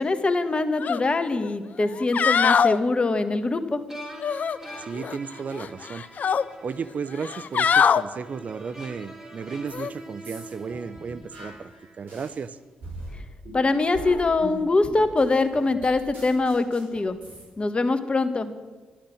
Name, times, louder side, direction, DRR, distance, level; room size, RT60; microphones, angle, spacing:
voice 1, 0.0-3.8 13.5-17.2 17.6-18.5, left 3 dB, 35° left, 9 dB, 1.5 m, -23 dB
sound 1, 0.8-1.0 1.4-1.5 2.0-2.8 4.2-5.2 5.5-6.4 7.2-8.0 9.7-9.9, left 7 dB, 55° left, 0.5 m, -22 dB
sound 2, 3.9-12.1, right 1 dB, 15° right, 3.4 m, -44 dB
voice 2, 4.9-6.0 6.6-11.7 12.0-12.6, right 5 dB, 50° right, 15 dB, 0.6 m, -34 dB
sound 3, 9.7-9.9 10.2-12.4 12.8-17.4, right 1 dB, 70° right, 5.7 m, -41 dB
12.0 x 12.0 x 6.4 m, 1.3 s
hypercardioid pair, 45°, 3 cm